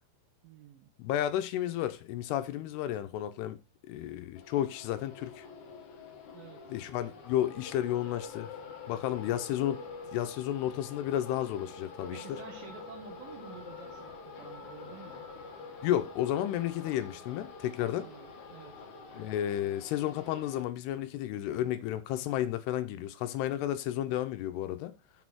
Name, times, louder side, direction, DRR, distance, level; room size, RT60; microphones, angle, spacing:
voice 1, 0.4-0.9 6.3-6.7 12.1-15.2 17.9-18.8, right 8 dB, 75° right, 2.3 m, -50 dB
voice 2, 1.0-3.6 3.9-5.5 6.7-8.5 8.9-12.4 15.8-18.1 19.1-24.9, left 12 dB, 85° left, 2.7 m, -32 dB
sound 1, 4.4-20.6, left 4 dB, 60° left, 2.2 m, -46 dB
7.2 x 4.1 x 6.1 m
omnidirectional pair, 4.8 m